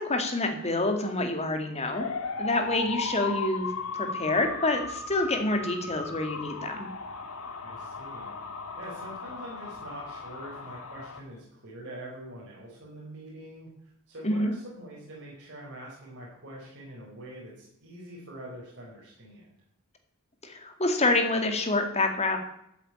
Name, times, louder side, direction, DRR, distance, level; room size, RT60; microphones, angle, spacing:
voice 1, 0.0-2.1 2.4-6.9 14.2-14.5 20.4-22.4, left 2 dB, 30° left, 5 dB, 2.1 m, -27 dB
sound 1, 1.9-11.2, left 4 dB, 80° left, 1.6 m, -36 dB
voice 2, 7.6-8.3 8.8-13.7 14.1-19.5, right 1 dB, 55° right, -5 dB, 4.7 m, -44 dB
13.5 x 7.7 x 8.8 m, 0.76 s
head